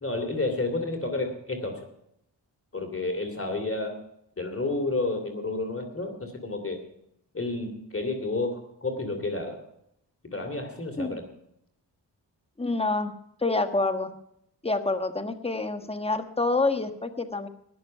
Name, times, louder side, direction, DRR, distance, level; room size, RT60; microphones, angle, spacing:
voice 1, 0.0-1.9 2.7-4.0 4.4-6.8 7.3-9.6 10.2-11.2, left 2 dB, 30° left, 5 dB, 2.9 m, -30 dB
voice 2, 12.6-13.1 13.4-14.1 14.6-17.5, left 3 dB, 15° left, 7 dB, 1.4 m, -27 dB
20.0 x 6.9 x 5.6 m, 0.75 s
cardioid pair, 50°, 44 cm